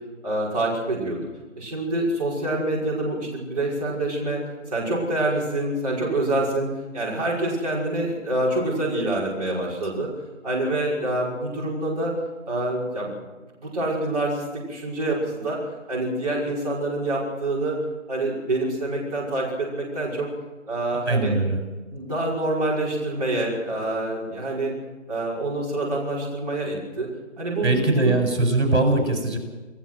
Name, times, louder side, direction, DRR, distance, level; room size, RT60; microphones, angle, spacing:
voice 1, 0.2-1.2 1.6-4.4 4.7-6.7 6.9-10.1 10.4-12.1 12.5-13.1 13.6-15.6 15.9-17.8 18.1-20.3 20.7-21.4 21.9-24.8 25.1-27.1 27.4-28.2, right 2 dB, 30° right, -6 dB, 5.9 m, -26 dB
voice 2, 21.1-21.6 27.6-29.4, right 2 dB, 60° right, 3 dB, 7.6 m, -21 dB
29.0 x 15.5 x 6.5 m, 1.2 s
figure-of-eight pair, 170°, 38 cm